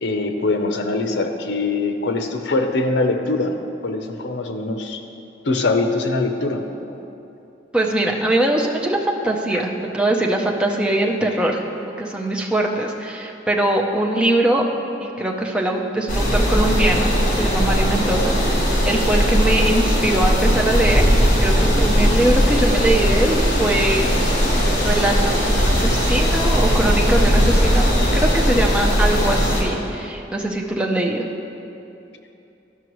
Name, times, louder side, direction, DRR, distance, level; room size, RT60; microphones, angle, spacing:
voice 1, 0.0-3.6 3.8-5.0 5.4-6.6 6.9-7.0 9.5-9.6, left 3 dB, 75° left, 5 dB, 0.7 m, -22 dB
voice 2, 7.7-14.6 15.0-21.0 21.4-24.1 24.8-27.8 28.1-31.2, right 1 dB, 5° right, -1 dB, 0.6 m, -22 dB
sound 1, 16.1-29.6, equal, 45° left, 1.6 m, -18 dB
12.5 x 5.9 x 3.1 m, 2.8 s
head